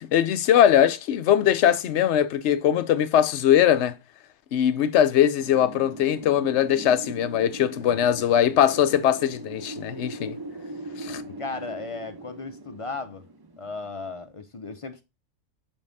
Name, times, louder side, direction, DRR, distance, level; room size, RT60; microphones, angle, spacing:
voice 1, 0.0-4.0 4.5-10.4 11.0-11.3, left 10 dB, 70° left, 0.9 m, -21 dB
Wind, 5.4-14.1, right 2 dB, 35° right, 0.4 m, -40 dB
voice 2, 7.7-8.8 11.4-13.2 13.6-15.0, left 3 dB, 35° left, 0.6 m, -36 dB
5.4 x 5.3 x 3.9 m
omnidirectional pair, 1.3 m